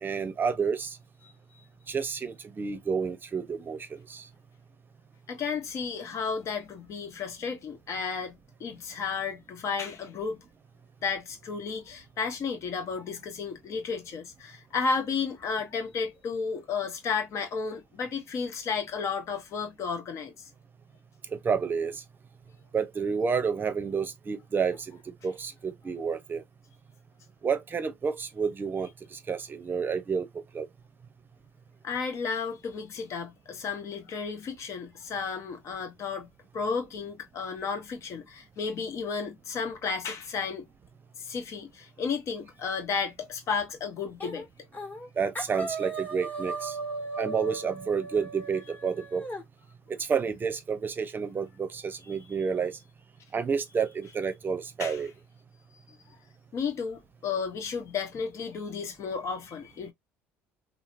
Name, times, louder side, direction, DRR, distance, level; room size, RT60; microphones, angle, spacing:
voice 1, 0.0-1.0 1.9-4.2 21.3-22.0 22.7-26.4 27.4-30.3 30.5-30.7 45.2-46.8 47.2-49.3 49.9-52.8 53.3-55.1, right 6 dB, 30° right, 0.7 m, -30 dB
voice 2, 5.3-8.3 8.6-10.4 11.0-20.5 31.8-36.3 36.5-40.7 41.2-44.4 52.1-52.2 54.8-55.0 56.5-59.9, left 5 dB, 50° left, 1.0 m, -33 dB
sound 1, 44.2-44.5 44.7-45.1 45.4-49.4, right 3 dB, 25° left, 1.3 m, -37 dB
3.0 x 2.0 x 2.5 m
hypercardioid pair, 70°, 6 cm